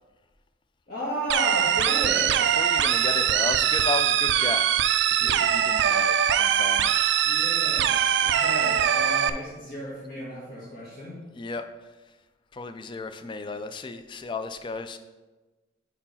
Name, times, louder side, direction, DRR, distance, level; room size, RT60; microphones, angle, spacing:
voice 1, 0.9-2.4 5.2-5.4 7.2-11.2, equal, 45° left, -7 dB, 1.4 m, -34 dB
sound 1, 1.3-9.3, right 9 dB, 60° right, 0.3 m, -22 dB
voice 2, 2.4-4.8 5.1-7.1 11.3-11.6 12.5-15.0, left 3 dB, 25° left, 9 dB, 0.3 m, -34 dB
4.7 x 4.6 x 5.6 m, 1.2 s
head